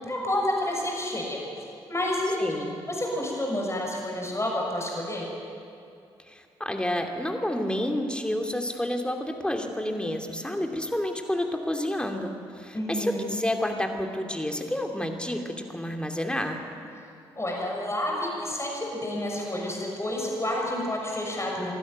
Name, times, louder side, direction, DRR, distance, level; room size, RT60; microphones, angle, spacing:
voice 1, 0.0-1.4 1.9-5.3 12.7-13.2 17.4-21.7, left 1 dB, 25° left, -1 dB, 6.4 m, -29 dB
voice 2, 2.4-2.7 6.3-16.6, left 1 dB, 10° left, 3 dB, 2.7 m, -29 dB
22.0 x 12.5 x 9.3 m, 2.6 s
hypercardioid pair, 45°, 12 cm